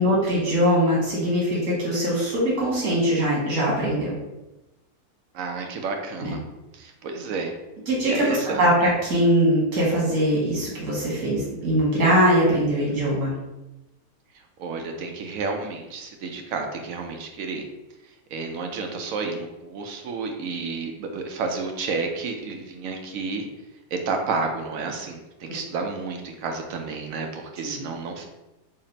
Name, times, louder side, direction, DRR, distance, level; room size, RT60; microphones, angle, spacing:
voice 1, 0.0-4.2 6.2-6.3 7.9-13.3 27.6-27.7, equal, 85° right, -6 dB, 1.8 m, -22 dB
voice 2, 5.3-6.4 6.7-7.5 8.0-8.7 14.6-17.6 18.3-23.5 23.9-28.3, right 4 dB, 70° right, 4 dB, 0.9 m, -31 dB
4.1 x 2.0 x 3.9 m, 1.0 s
omnidirectional pair, 1.5 m